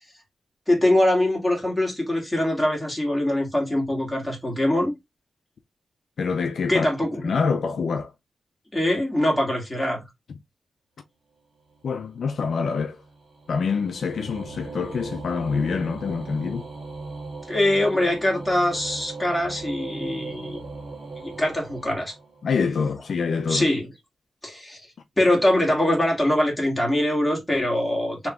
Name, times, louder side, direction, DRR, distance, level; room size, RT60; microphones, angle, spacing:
voice 1, 0.7-5.0 6.7-7.4 8.7-10.0 17.5-20.6 21.2-22.1 23.5-23.9 24.4-24.8 25.2-28.3, left 1 dB, 5° left, 1.8 m, -23 dB
voice 2, 6.2-6.9 7.2-8.1 11.8-13.0 13.5-16.7 22.4-23.7, left 5 dB, 65° left, 0.5 m, -26 dB
sound 1, 11.7-22.6, right 3 dB, 55° right, 1.4 m, -39 dB
3.4 x 3.0 x 3.6 m
wide cardioid pair, 160°, 0 cm